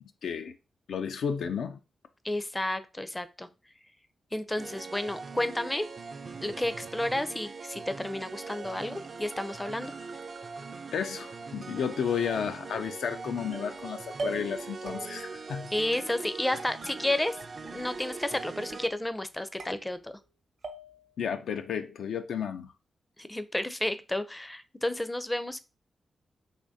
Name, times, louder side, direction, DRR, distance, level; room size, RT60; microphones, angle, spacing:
voice 1, 0.2-0.5 0.9-1.8 10.9-15.7 21.2-22.7, left 7 dB, 80° left, 0.3 m, -32 dB
voice 2, 2.2-3.5 4.3-5.9 6.4-9.9 15.7-17.4 17.6-20.1 23.2-25.6, left 1 dB, 15° left, 0.4 m, -31 dB
sound 1, 4.6-18.9, right 4 dB, 55° right, 0.4 m, -41 dB
sound 2, 13.5-13.8 14.2-14.6 14.9-15.4 15.9-16.5 16.8-17.5 17.8-18.3 18.7-19.2 19.6-20.3 20.6-21.2, right 3 dB, 70° right, 0.8 m, -42 dB
3.5 x 3.1 x 2.6 m
supercardioid pair, 50°, 0 cm